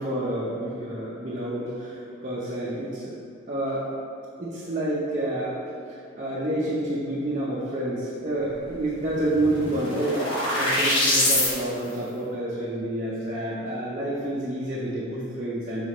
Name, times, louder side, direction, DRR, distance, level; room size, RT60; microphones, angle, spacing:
voice 1, 0.0-3.2 3.5-4.0 4.4-5.5 5.9-15.9, right 1 dB, 35° right, -8 dB, 0.7 m, -29 dB
Percusive Noise Riser, 8.7-8.8 9.0-11.5, left 1 dB, 90° left, 1.4 m, -24 dB
6.2 x 4.9 x 3.1 m, 2.5 s
head